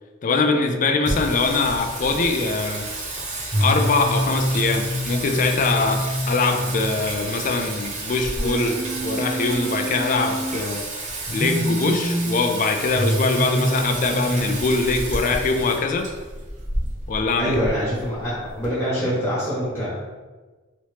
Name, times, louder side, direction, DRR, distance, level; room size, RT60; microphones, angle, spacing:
voice 1, 0.2-2.9 3.6-10.8 11.3-16.1 17.1-17.6, left 3 dB, 40° left, 5 dB, 0.3 m, -22 dB
Singing, 1.1-18.7, right 1 dB, 40° right, 0.7 m, -27 dB
voice 2, 17.4-19.9, equal, 10° left, -10 dB, 1.0 m, -25 dB
3.0 x 2.8 x 3.2 m, 1.3 s
head